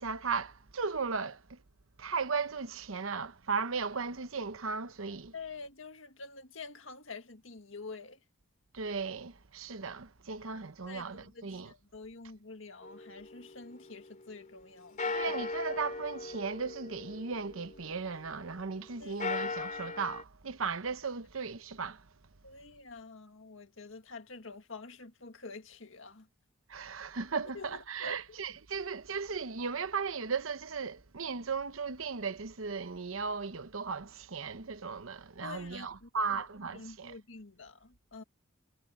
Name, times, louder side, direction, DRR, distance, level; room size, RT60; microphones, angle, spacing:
voice 1, 0.0-1.6 2.0-5.3 8.7-11.7 15.1-22.1 26.7-37.1, right 5 dB, 90° right, 1.0 m, -36 dB
voice 2, 5.3-8.2 10.5-15.1 19.0-19.2 22.4-26.3 27.5-28.2 35.4-36.1 36.6-38.2, left 4 dB, 70° left, 2.0 m, -47 dB
sound 1, 12.8-14.6 15.0-18.5 19.0-20.2, left 3 dB, 40° left, 2.9 m, -39 dB
head